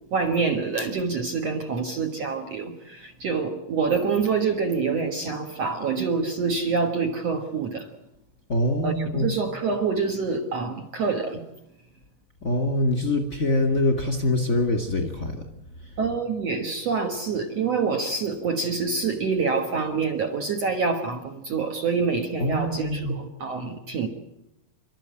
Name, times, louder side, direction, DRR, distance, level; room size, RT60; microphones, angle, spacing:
voice 1, 0.1-7.9 8.8-11.4 16.0-24.1, right 5 dB, 70° right, 1.5 m, -26 dB
voice 2, 8.5-9.4 12.4-15.5 15.8-15.9 22.4-23.2, left 1 dB, 40° left, 1.2 m, -24 dB
28.5 x 13.5 x 9.1 m
omnidirectional pair, 5.4 m